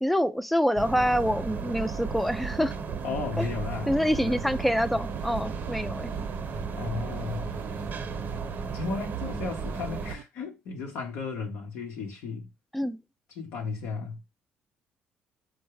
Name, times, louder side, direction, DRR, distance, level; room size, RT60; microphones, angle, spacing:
voice 1, 0.0-2.7 3.4-3.5 3.9-6.1 12.7-13.0, equal, ahead, 0.4 m, -26 dB
sound 1, 0.8-10.2, right 5 dB, 45° right, 0.8 m, -34 dB
voice 2, 3.0-4.5 6.8-7.6 8.7-12.5 13.3-14.2, left 5 dB, 80° left, 0.8 m, -35 dB
sound 2, 4.4-10.2, right 11 dB, 75° right, 0.4 m, -48 dB
4.5 x 2.1 x 4.7 m
supercardioid pair, 80°, 4 cm